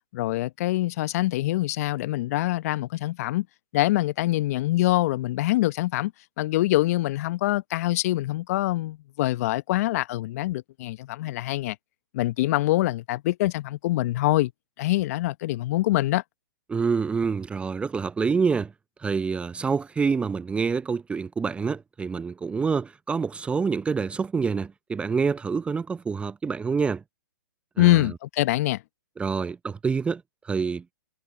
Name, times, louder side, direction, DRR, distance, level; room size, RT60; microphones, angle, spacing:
voice 1, 0.1-3.5 3.7-6.1 6.4-11.8 12.1-14.5 14.8-16.2 27.8-28.8, left 17 dB, 45° left, 1.1 m, -24 dB
voice 2, 16.7-18.7 19.0-27.0 27.8-28.1 29.2-30.8, right 5 dB, 10° right, 0.7 m, -27 dB
hypercardioid pair, 125°, 11 cm